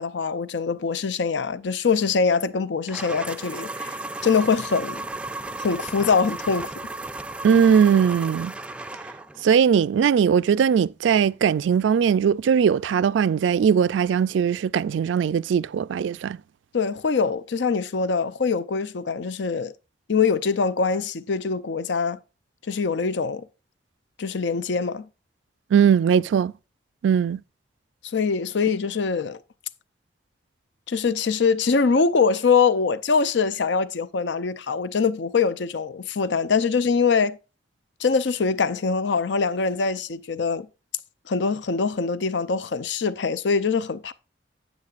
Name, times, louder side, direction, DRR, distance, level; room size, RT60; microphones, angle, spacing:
voice 1, 0.0-5.0 5.6-6.7 16.7-19.7 20.1-22.2 22.7-23.5 24.2-25.1 28.1-29.4 30.9-37.4 38.0-40.7 41.3-44.1, left 5 dB, 80° left, 0.5 m, -23 dB
sound 1, 2.9-9.4, right 2 dB, 5° right, 0.3 m, -34 dB
voice 2, 7.4-8.5 9.4-16.4 25.7-26.5 27.0-27.4, right 7 dB, 90° right, 0.3 m, -20 dB
9.5 x 8.8 x 2.4 m
head